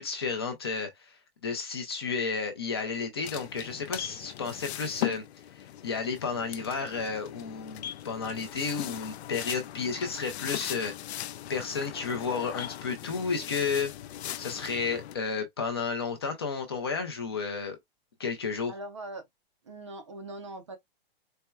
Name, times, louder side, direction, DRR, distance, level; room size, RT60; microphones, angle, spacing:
voice 1, 0.0-5.2 5.6-11.2 11.5-13.9 14.4-17.8 18.2-18.8, left 5 dB, 25° left, 0.5 m, -32 dB
sound 1, 3.2-15.2, left 12 dB, 90° left, 0.5 m, -39 dB
voice 2, 18.7-19.2 19.6-20.8, right 2 dB, 30° right, 0.5 m, -41 dB
4.3 x 2.1 x 2.3 m
hypercardioid pair, 175°, 31 cm